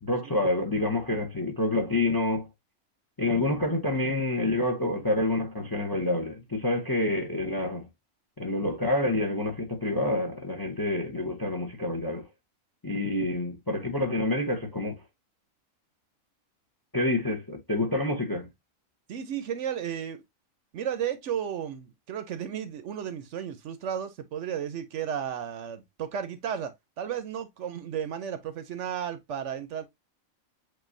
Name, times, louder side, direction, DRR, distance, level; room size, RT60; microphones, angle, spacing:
voice 1, 0.0-2.5 3.2-7.9 8.4-12.3 12.8-14.9 16.9-18.5, left 2 dB, 20° left, 0.6 m, -28 dB
voice 2, 19.1-20.2 20.7-29.8, right 9 dB, 65° right, 0.9 m, -33 dB
7.6 x 2.6 x 2.6 m
omnidirectional pair, 1.4 m